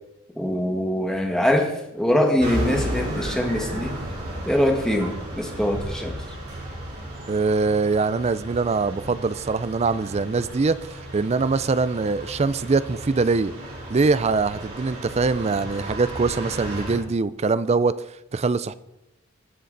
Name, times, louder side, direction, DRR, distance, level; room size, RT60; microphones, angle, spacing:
voice 1, 0.3-3.9 4.4-6.2, equal, 5° left, 2 dB, 1.5 m, -23 dB
sound 1, 2.4-17.0, equal, 50° right, 4.7 m, -34 dB
voice 2, 7.3-13.5 13.9-18.0 18.3-18.7, right 4 dB, 30° right, 16 dB, 0.4 m, -23 dB
20.0 x 6.9 x 4.0 m, 0.90 s
head